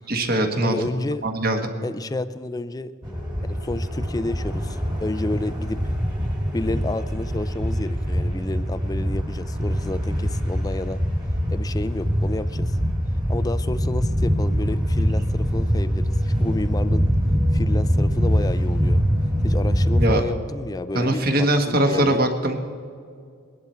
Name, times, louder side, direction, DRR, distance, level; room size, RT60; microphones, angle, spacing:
voice 1, 0.1-0.7 1.2-1.7 20.0-20.2 20.9-22.6, right 1 dB, 40° right, 5 dB, 1.3 m, -21 dB
voice 2, 0.6-1.3 1.8-2.9 3.5-5.8 6.5-11.0 11.5-12.8 13.3-17.1 17.5-19.0 19.4-22.2, left 2 dB, 15° left, 14 dB, 0.3 m, -30 dB
sound 1, 3.0-20.2, equal, 20° right, 1.9 m, -23 dB
21.5 x 11.0 x 4.3 m, 2.3 s
head